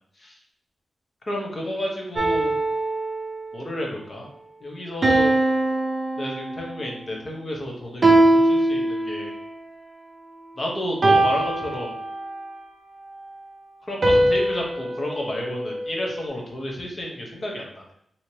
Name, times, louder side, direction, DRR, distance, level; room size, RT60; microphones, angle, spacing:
voice 1, 1.3-2.5 3.5-4.3 4.6-5.4 6.2-9.3 10.6-11.9 13.9-17.8, left 1 dB, 35° left, -1 dB, 0.8 m, -31 dB
sound 1, 2.2-3.6 5.0-6.9 8.0-9.5 11.0-12.5 14.0-16.3, right 1 dB, 40° right, 0.5 m, -22 dB
3.1 x 2.8 x 2.8 m, 0.71 s
wide cardioid pair, 140°, 0 cm